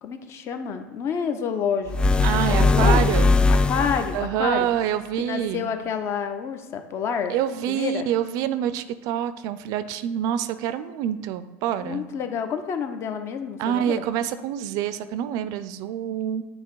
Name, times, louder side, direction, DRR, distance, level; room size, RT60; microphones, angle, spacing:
voice 1, 0.0-2.2 2.5-3.3 3.6-4.7 5.2-7.3 7.7-8.1 11.8-14.0, left 7 dB, 40° left, 7 dB, 0.7 m, -28 dB
sound 1, 1.9-4.3, left 3 dB, 15° left, 0.3 m, -19 dB
voice 2, 2.2-3.4 4.1-5.7 7.3-12.0 13.6-16.4, right 10 dB, 55° right, 13 dB, 0.4 m, -26 dB
8.1 x 2.8 x 4.7 m, 1.3 s
supercardioid pair, 115°, 7 cm